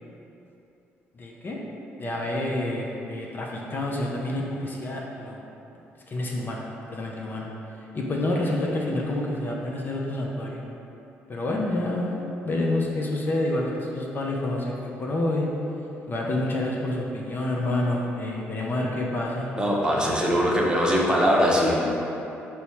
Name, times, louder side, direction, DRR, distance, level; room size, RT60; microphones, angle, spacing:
voice 1, 1.2-1.6 2.0-5.4 6.1-6.6 6.9-7.5 7.9-10.6 11.3-15.5 16.1-19.5 20.0-20.4, left 1 dB, 40° left, -2 dB, 0.5 m, -28 dB
voice 2, 19.6-21.8, equal, 15° right, -3 dB, 0.8 m, -21 dB
4.4 x 2.1 x 4.3 m, 2.9 s
supercardioid pair, 65°, 5 cm